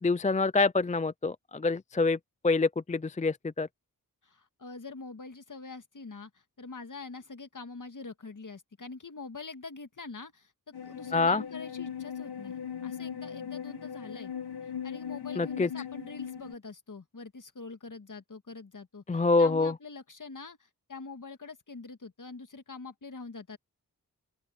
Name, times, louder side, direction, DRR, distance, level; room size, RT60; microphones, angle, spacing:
voice 1, 0.0-2.2 2.4-3.7 11.1-11.4 15.4-15.7 19.1-19.7, left 3 dB, 20° left, 0.5 m, -26 dB
voice 2, 4.2-10.5 10.8-12.6 12.8-14.3 14.8-23.6, left 4 dB, 50° left, 2.0 m, -44 dB
sound 1, 10.7-16.5, left 8 dB, 75° left, 1.4 m, -39 dB
open air
cardioid pair, 50°, 38 cm